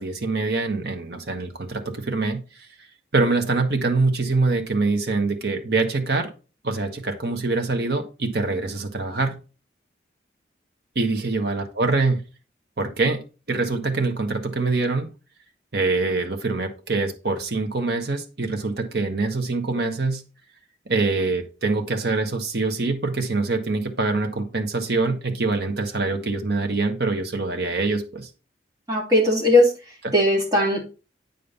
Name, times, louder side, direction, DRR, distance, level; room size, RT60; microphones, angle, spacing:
voice 1, 0.0-2.4 3.1-6.3 6.6-9.4 10.9-12.2 12.8-13.2 13.5-15.1 15.7-20.2 20.9-28.3 30.0-30.1, right 3 dB, 65° right, 4 dB, 1.3 m, -24 dB
voice 2, 28.9-30.8, left 1 dB, 20° right, -1 dB, 2.7 m, -19 dB
8.6 x 5.3 x 4.1 m, 0.32 s
head